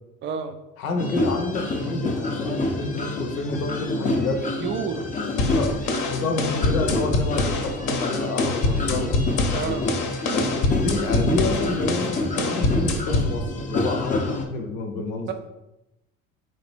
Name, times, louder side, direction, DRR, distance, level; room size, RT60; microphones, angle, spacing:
voice 1, 0.2-0.6 4.6-5.0 9.5-9.8 15.3-15.4, right 6 dB, 30° right, 7 dB, 0.5 m, -29 dB
voice 2, 0.8-4.5 5.5-5.8 6.1-9.1 10.3-15.3, left 3 dB, 80° left, 4 dB, 0.8 m, -29 dB
sound 1, 1.0-14.4, left 2 dB, 20° left, 0.6 m, -28 dB
sound 2, 5.4-13.4, left 2 dB, 45° left, 0.8 m, -25 dB
4.0 x 2.8 x 3.3 m, 0.91 s
hypercardioid pair, 65°, 41 cm